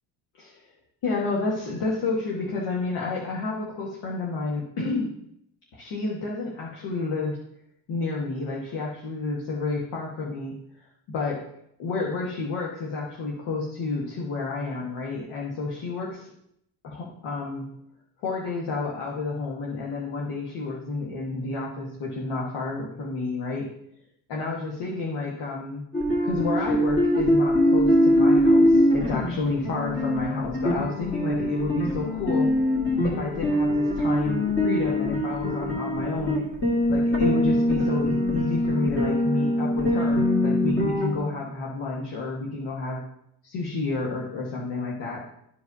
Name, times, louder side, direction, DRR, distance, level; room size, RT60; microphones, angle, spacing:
voice 1, 0.4-0.7 1.0-5.1 5.7-7.4 7.9-10.5 11.1-11.4 11.8-16.3 16.8-17.6 18.2-23.7 24.3-25.8 26.2-32.5 33.0-36.4 36.9-43.0 43.4-45.2, left 3 dB, 70° left, -3 dB, 1.6 m, -30 dB
sound 1, 25.9-41.1, left 1 dB, 25° left, 1.8 m, -23 dB
12.5 x 4.9 x 2.7 m, 0.75 s
cardioid pair, 120°, 44 cm